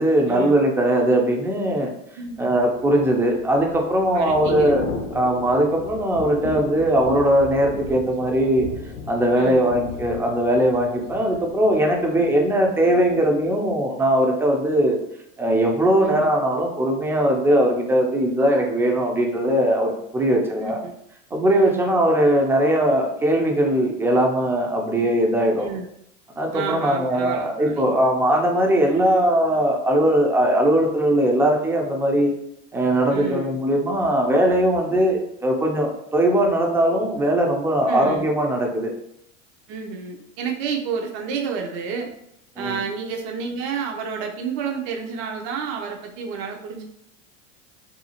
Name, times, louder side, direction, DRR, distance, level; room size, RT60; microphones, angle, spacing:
voice 1, 0.0-1.9 2.4-4.9 5.1-8.7 9.1-15.0 15.4-20.8 21.3-25.7 26.4-32.3 32.7-38.9 42.6-42.8, right 1 dB, 5° right, 1 dB, 0.4 m, -20 dB
Thunder / Rain, 2.5-12.5 12.8-13.1, left 5 dB, 85° left, 0.5 m, -36 dB
voice 2, 4.1-4.8 9.4-9.8 12.2-12.4 16.0-16.3 20.6-20.9 21.6-21.9 25.6-25.8 26.5-27.9 28.9-29.2 33.1-33.5 37.9-38.3 39.7-42.1 42.6-46.8, right 5 dB, 60° right, 2 dB, 0.6 m, -30 dB
2.7 x 2.3 x 2.8 m, 0.76 s
hypercardioid pair, 95°, 38 cm